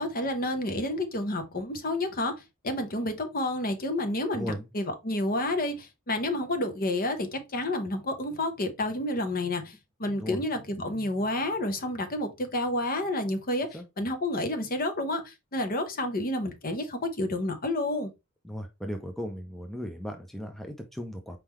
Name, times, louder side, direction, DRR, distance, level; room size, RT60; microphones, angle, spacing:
voice 1, 0.0-9.7 10.0-13.7 14.0-18.1, left 1 dB, 45° left, 0.9 m, -30 dB
voice 2, 4.3-4.7 10.2-10.4 13.7-13.8 18.4-21.4, equal, ahead, 0.5 m, -36 dB
4.6 x 3.7 x 3.1 m
head